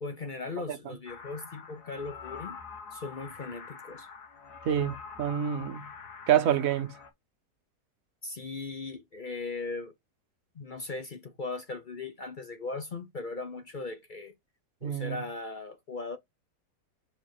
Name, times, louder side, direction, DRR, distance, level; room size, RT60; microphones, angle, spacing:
voice 1, 0.0-2.6 2.9-4.1 8.2-9.9 10.5-14.3 14.8-16.2, left 3 dB, 45° left, 0.6 m, -38 dB
sound 1, 1.1-7.1, left 5 dB, 75° left, 1.8 m, -45 dB
voice 2, 4.6-5.9 6.3-6.9 14.8-15.2, right 10 dB, 65° right, 1.1 m, -27 dB
5.6 x 4.5 x 4.6 m
omnidirectional pair, 1.7 m